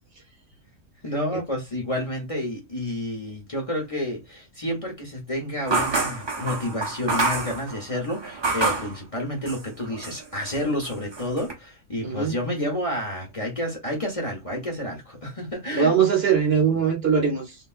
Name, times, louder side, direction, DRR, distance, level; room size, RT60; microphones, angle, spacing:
voice 1, 1.0-15.9, left 1 dB, 30° left, 0.9 m, -30 dB
sound 1, 5.7-8.9 9.4-10.2 10.5-11.5, right 3 dB, 30° right, 0.6 m, -27 dB
voice 2, 12.0-12.3 15.7-17.6, right 6 dB, 55° right, 1.1 m, -21 dB
3.3 x 2.5 x 2.4 m
omnidirectional pair, 1.3 m